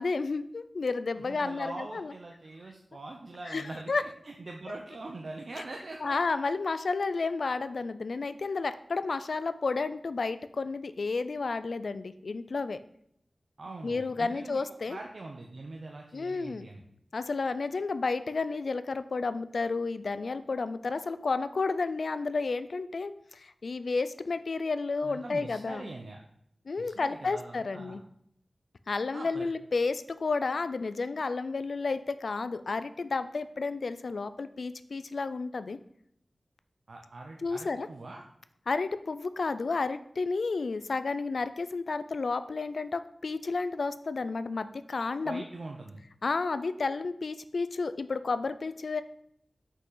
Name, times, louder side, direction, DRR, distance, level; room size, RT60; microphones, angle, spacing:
voice 1, 0.0-2.1 3.4-4.0 4.7-4.8 6.0-12.8 13.8-15.0 16.1-16.7 17.1-25.9 26.7-28.0 28.9-35.8 37.4-37.9 38.7-45.4 46.2-49.0, left 4 dB, 75° left, 12 dB, 0.4 m, -31 dB
voice 2, 1.2-6.2 13.6-14.6 14.9-16.8 25.0-26.2 26.8-28.0 29.1-29.5 36.9-38.2 45.2-46.0, right 2 dB, 70° right, 1 dB, 0.7 m, -43 dB
5.9 x 5.7 x 3.9 m, 0.72 s
wide cardioid pair, 55°, 0 cm